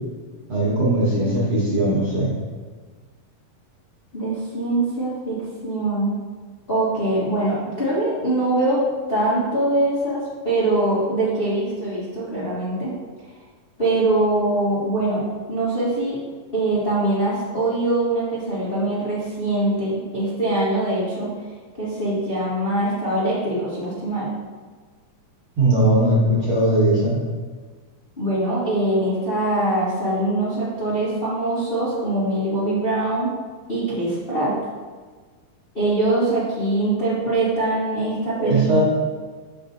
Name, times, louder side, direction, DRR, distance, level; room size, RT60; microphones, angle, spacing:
voice 1, 0.5-2.3 25.6-27.2 38.4-38.8, right 1 dB, 50° right, -6 dB, 1.8 m, -19 dB
voice 2, 4.1-6.1 6.7-8.8 9.1-12.9 13.8-16.2 16.5-21.3 21.8-24.3 28.2-33.3 33.7-34.5 35.7-38.8, right 2 dB, 85° left, -10 dB, 0.5 m, -23 dB
6.8 x 5.8 x 3.9 m, 1.4 s
omnidirectional pair, 4.4 m